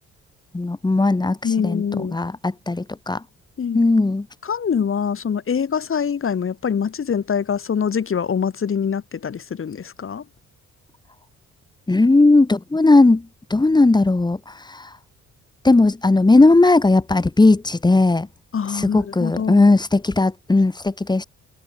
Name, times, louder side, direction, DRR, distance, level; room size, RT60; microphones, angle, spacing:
voice 1, 0.5-1.4 1.6-3.2 3.7-4.2 11.9-14.9 15.6-18.3 18.7-21.2, left 2 dB, 15° left, 1.3 m, -17 dB
voice 2, 1.4-2.2 3.6-3.8 4.4-10.2 18.5-19.7, left 7 dB, 45° left, 3.0 m, -24 dB
cardioid pair, 90°, 30 cm